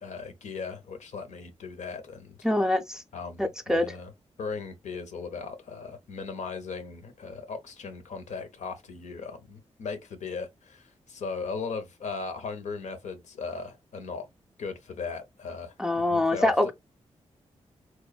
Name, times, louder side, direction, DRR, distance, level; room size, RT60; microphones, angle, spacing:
voice 1, 0.0-2.4 3.1-4.1 4.4-14.3 14.6-16.7, left 4 dB, 80° left, 0.7 m, -37 dB
voice 2, 2.4-3.0 3.4-3.9 15.8-16.7, left 1 dB, 5° right, 0.4 m, -24 dB
3.0 x 2.1 x 2.2 m
cardioid pair, 70°, 12 cm